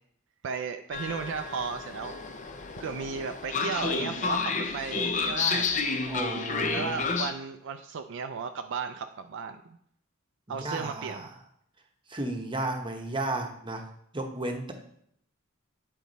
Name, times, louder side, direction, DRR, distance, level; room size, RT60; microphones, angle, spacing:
voice 1, 0.4-2.2 2.8-5.7 6.7-9.8 10.5-11.3, right 5 dB, 65° right, 7 dB, 0.4 m, -35 dB
Train, 0.9-7.3, left 4 dB, 35° left, 0.6 m, -30 dB
voice 2, 6.1-7.0 10.5-11.3 12.1-13.9 14.1-14.7, right 2 dB, 25° right, 3 dB, 0.9 m, -33 dB
9.1 x 4.2 x 4.0 m, 0.68 s
head